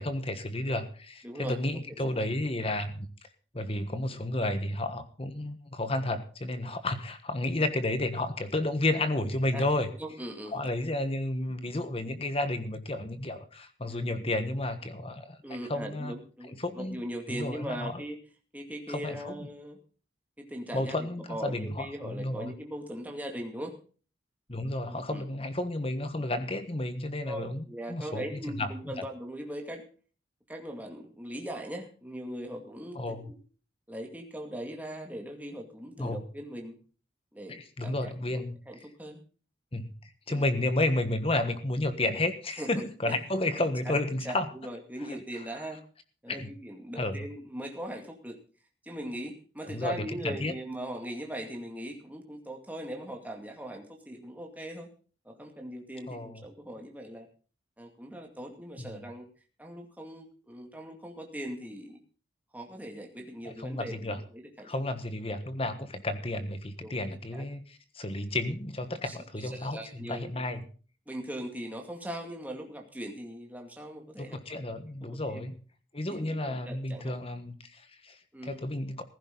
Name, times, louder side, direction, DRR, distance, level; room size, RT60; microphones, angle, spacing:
voice 1, 0.0-3.1 3.5-9.9 10.5-15.4 15.7-16.1 16.6-17.0 17.3-18.0 18.9-19.3 20.7-22.5 24.5-27.6 27.9-28.2 28.6-28.7 32.9-33.3 36.0-36.2 37.5-38.6 39.7-44.5 46.3-46.5 47.0-47.2 49.7-50.5 56.1-56.4 58.9-59.0 63.4-64.2 64.6-67.6 67.9-70.6 74.2-75.6 75.9-78.2 78.4-79.0, left 1 dB, 30° left, 10 dB, 1.4 m, -32 dB
voice 2, 1.2-2.2 4.1-4.2 9.5-9.7 10.0-10.6 13.9-14.0 15.4-18.2 18.5-19.8 20.4-23.8 24.9-25.3 27.2-29.9 30.5-33.4 33.9-36.8 37.3-39.2 40.3-40.4 42.6-43.2 43.8-43.9 44.2-45.8 46.2-48.4 48.8-54.9 55.2-57.3 57.8-59.3 59.6-62.0 62.5-64.7 66.8-66.9 67.3-67.4 69.0-69.2 69.4-70.4 71.1-74.4 75.0-75.5 76.1-77.2 78.3-78.6, right 1 dB, 10° right, 2 dB, 2.3 m, -40 dB
16.0 x 15.0 x 3.9 m, 0.39 s
head